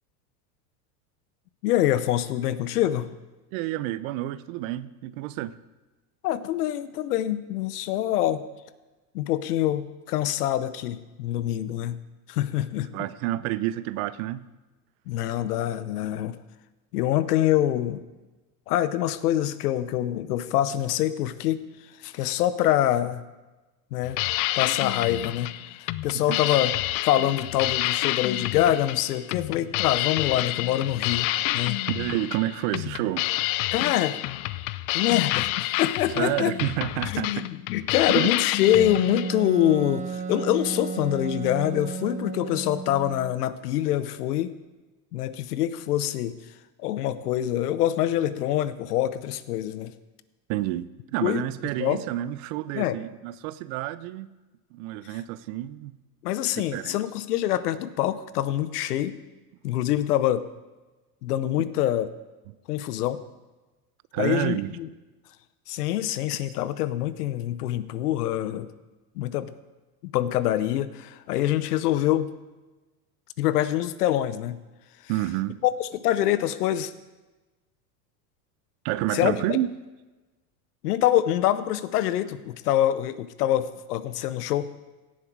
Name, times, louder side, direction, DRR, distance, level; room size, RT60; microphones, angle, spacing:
voice 1, 1.6-3.1 6.2-8.4 9.1-12.0 12.3-12.9 15.1-16.4 16.9-18.0 18.7-21.6 22.0-23.2 23.9-24.2 24.5-25.5 25.8-26.7 27.0-31.8 33.7-34.2 34.9-36.5 37.0-44.5 45.1-46.4 46.8-49.9 51.2-51.4 51.8-52.0 52.7-53.0 56.2-59.2 59.6-60.5 61.2-62.1 62.7-63.2 64.2-64.9 65.7-68.7 69.2-69.5 70.0-72.3 73.4-74.6 75.6-76.9 79.1-79.6 80.8-84.7, left 12 dB, 80° left, 15 dB, 0.9 m, -25 dB
voice 2, 3.5-5.6 12.9-14.4 26.3-26.4 31.9-33.3 36.1-37.5 38.1-38.3 50.5-54.3 54.7-55.9 56.6-57.0 61.6-61.7 64.1-64.7 75.1-75.6 78.8-79.7, right 15 dB, 60° right, 17 dB, 0.7 m, -29 dB
sound 1, 24.0-39.3, left 17 dB, 45° left, 0.4 m, -29 dB
Wind instrument woodwind instrument, 38.7-43.3, right 5 dB, 15° right, 1.0 m, -33 dB
17.0 x 7.5 x 4.6 m, 1.2 s
hypercardioid pair, 105°, 45 cm